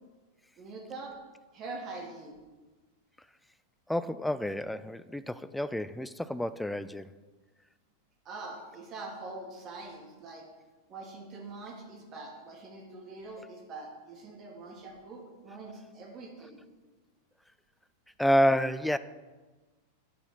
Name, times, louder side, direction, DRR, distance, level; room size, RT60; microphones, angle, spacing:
voice 1, 0.6-1.1 1.5-2.4 8.3-10.5 10.9-16.6, right 3 dB, 35° right, -1 dB, 1.9 m, -44 dB
voice 2, 3.9-7.1 18.2-19.0, equal, 5° left, 14 dB, 0.3 m, -29 dB
9.1 x 4.3 x 5.6 m, 1.2 s
figure-of-eight pair, 95°, 0 cm